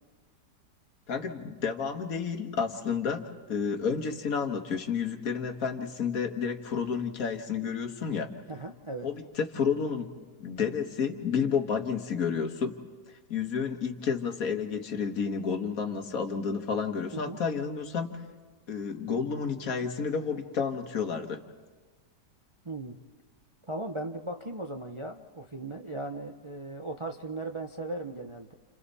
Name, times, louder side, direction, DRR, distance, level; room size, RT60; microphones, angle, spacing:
voice 1, 1.1-3.2 3.5-8.3 9.0-10.1 10.4-12.7 13.3-18.1 18.7-21.4, left 6 dB, 55° left, 5 dB, 1.9 m, -30 dB
voice 2, 8.5-9.1 17.1-17.4 22.6-23.0 23.7-28.5, right 2 dB, 30° right, 4 dB, 0.5 m, -37 dB
30.0 x 30.0 x 4.2 m, 1.3 s
omnidirectional pair, 1.8 m